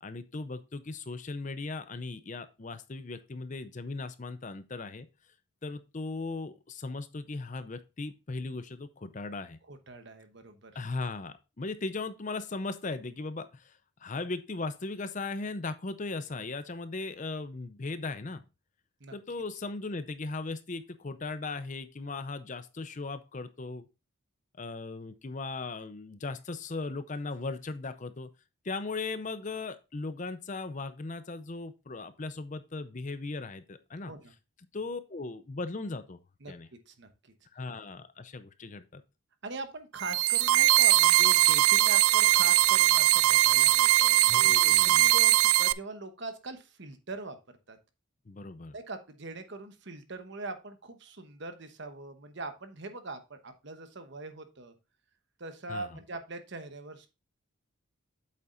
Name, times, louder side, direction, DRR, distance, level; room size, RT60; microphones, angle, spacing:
voice 1, 0.0-5.1 5.6-9.6 10.7-13.7 14.0-18.4 19.1-23.8 24.6-28.3 28.6-34.1 34.7-36.2 36.5-36.7 37.5-39.0 44.2-45.1 48.3-48.7 55.7-55.9, left 3 dB, 35° left, 12 dB, 0.6 m, -38 dB
voice 2, 9.6-10.7 19.0-19.1 34.1-34.3 36.4-36.5 36.9-37.3 39.4-47.4 47.7-47.8 48.7-54.7 55.4-57.1, right 2 dB, 55° right, 8 dB, 1.0 m, -42 dB
sound 1, 40.0-45.7, right 16 dB, 80° right, 0.4 m, -21 dB
8.4 x 7.0 x 2.5 m, 0.28 s
head